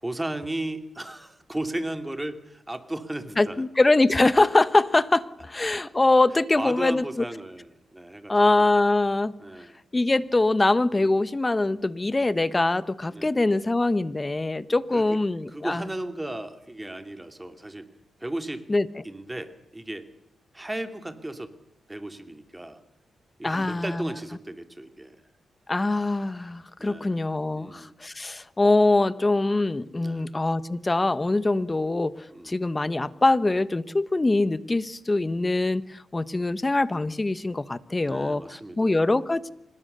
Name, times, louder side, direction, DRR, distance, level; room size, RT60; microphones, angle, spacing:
voice 1, 0.0-3.6 5.6-5.7 6.6-8.7 9.4-9.8 11.0-11.2 13.1-13.4 14.9-15.2 15.5-17.9 18.2-18.6 19.0-20.1 20.5-21.5 21.9-22.8 23.4-25.2 26.8-27.2 27.5-28.0 30.0-30.3 32.3-32.6 38.0-39.1, right 1 dB, 15° right, 8 dB, 2.5 m, -35 dB
voice 2, 3.4-7.2 8.3-9.3 9.9-15.8 18.7-18.9 23.4-24.0 25.7-32.1 32.4-39.5, left 2 dB, 25° left, 16 dB, 1.1 m, -23 dB
25.5 x 20.5 x 6.8 m, 0.81 s
cardioid pair, 70°, 0 cm